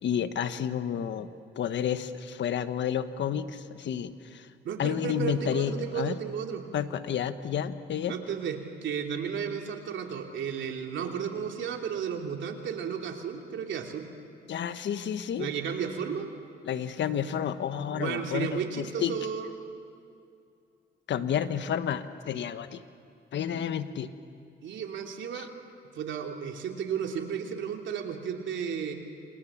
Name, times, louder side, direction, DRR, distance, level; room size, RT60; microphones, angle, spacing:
voice 1, 0.0-1.3 1.6-4.5 4.8-6.2 6.7-8.2 14.5-15.5 16.6-19.1 21.1-22.8 23.3-24.1 25.3-25.5, left 8 dB, 65° left, 11 dB, 1.3 m, -30 dB
voice 2, 4.6-6.6 8.1-14.1 15.4-16.3 17.9-19.6 23.5-23.6 24.6-25.5 25.9-28.9, right 7 dB, 70° right, 3 dB, 3.1 m, -33 dB
28.0 x 27.0 x 7.4 m, 2.4 s
cardioid pair, 90°, 20 cm